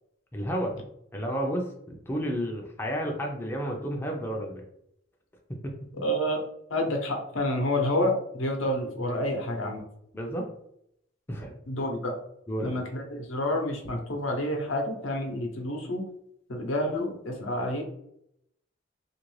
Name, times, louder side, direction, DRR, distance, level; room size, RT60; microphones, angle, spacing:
voice 1, 0.3-0.8 1.1-4.6 5.6-5.7 10.1-10.5 11.3-11.5 12.5-12.8, equal, 10° left, 0 dB, 0.4 m, -31 dB
voice 2, 6.0-6.4 6.7-9.8 11.7-12.1 12.6-16.0 16.5-17.8, left 1 dB, 80° left, 2 dB, 0.8 m, -29 dB
2.9 x 2.5 x 3.1 m, 0.74 s
head